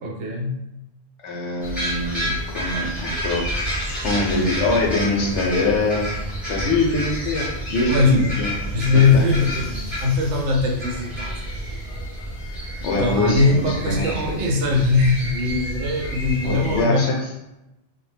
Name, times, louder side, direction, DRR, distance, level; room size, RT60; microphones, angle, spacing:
voice 1, 0.0-0.6 7.9-8.2 8.7-11.4 13.0-17.1, left 3 dB, 75° right, 0 dB, 0.9 m, -20 dB
voice 2, 1.2-6.1 6.5-8.5 8.9-9.5 12.8-14.4 16.4-17.3, left 2 dB, 75° left, -1 dB, 0.9 m, -24 dB
sound 1, 1.6-16.8, equal, ahead, 0.8 m, -29 dB
2.2 x 2.0 x 3.2 m, 0.91 s
omnidirectional pair, 1.2 m